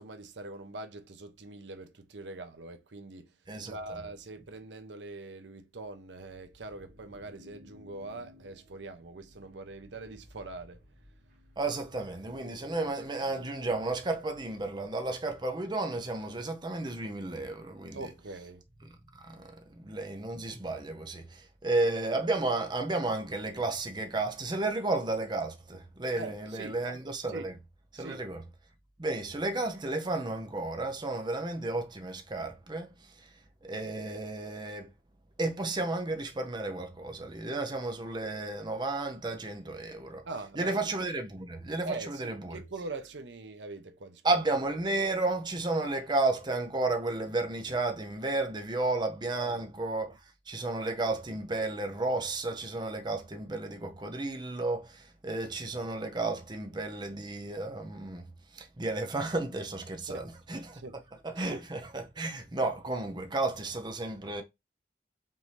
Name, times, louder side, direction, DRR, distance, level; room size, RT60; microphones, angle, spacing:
voice 1, 0.0-3.3 3.6-10.8 17.9-18.6 26.2-26.7 27.3-27.5 28.0-28.2 40.2-40.8 41.8-44.2 49.3-49.6 60.1-60.2 60.7-60.9 61.4-61.6, right 3 dB, 85° right, 0.8 m, -42 dB
sound 1, 6.1-15.1, left 1 dB, 55° right, 1.4 m, -56 dB
voice 2, 11.6-18.0 18.8-27.5 27.9-28.4 29.0-34.9 35.4-40.3 40.5-42.6 44.2-60.8 61.2-64.4, right 2 dB, 25° right, 0.6 m, -33 dB
5.5 x 2.7 x 3.2 m
head